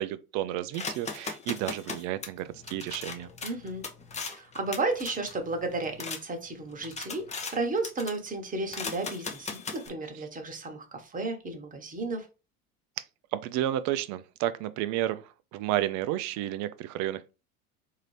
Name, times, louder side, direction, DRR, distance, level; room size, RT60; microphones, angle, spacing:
voice 1, 0.0-3.3 13.0-13.1 13.3-17.3, right 13 dB, 45° right, 0.5 m, -31 dB
sound 1, 0.7-6.2 6.6-7.6 7.8-8.3 8.7-9.9, left 4 dB, 15° left, 0.6 m, -38 dB
voice 2, 3.4-3.8 4.3-12.3, right 3 dB, 20° right, 1.1 m, -33 dB
3.8 x 2.8 x 3.2 m
hypercardioid pair, 85°, 43 cm